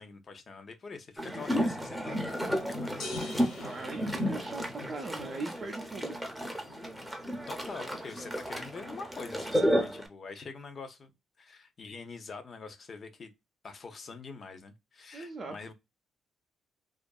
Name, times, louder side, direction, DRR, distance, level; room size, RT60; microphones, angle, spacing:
voice 1, 0.0-3.2 7.5-11.1 11.4-13.3 13.6-15.7, left 4 dB, 45° left, 0.6 m, -45 dB
sound 1, 1.2-10.1, equal, ahead, 0.7 m, -32 dB
sound 2, 3.0-5.0, left 2 dB, 75° left, 0.9 m, -43 dB
voice 2, 3.6-6.2 15.1-15.5, right 3 dB, 40° right, 0.5 m, -40 dB
2.6 x 2.4 x 2.3 m
cardioid pair, 90°, 0 cm